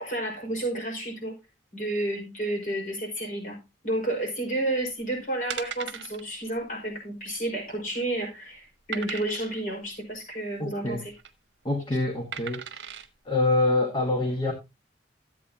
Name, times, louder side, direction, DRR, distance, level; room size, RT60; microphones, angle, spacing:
voice 1, 0.0-1.4 1.7-3.6 3.8-11.1, right 1 dB, 45° left, 5.1 m, -31 dB
sound 1, 4.8-5.0 5.5-6.2 6.6-6.7 7.0-7.1 7.7-8.1 8.9-9.6 10.9-11.3 12.3-13.1 13.7-13.8, right 7 dB, 70° right, 1.0 m, -38 dB
voice 2, 10.6-11.0 11.6-12.6 13.2-14.5, left 2 dB, 25° left, 1.5 m, -25 dB
13.0 x 8.3 x 2.8 m
head